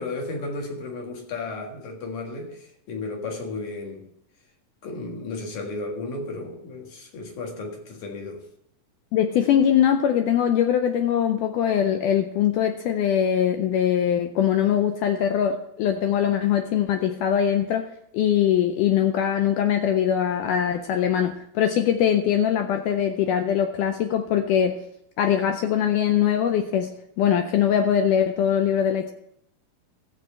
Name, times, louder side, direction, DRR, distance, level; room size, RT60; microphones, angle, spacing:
voice 1, 0.0-4.1 4.8-8.4, left 3 dB, 60° left, 2 dB, 2.9 m, -34 dB
voice 2, 9.1-24.8 25.2-26.9 27.2-29.1, left 9 dB, 85° left, 6 dB, 1.9 m, -22 dB
15.5 x 7.6 x 4.4 m, 0.71 s
omnidirectional pair, 4.3 m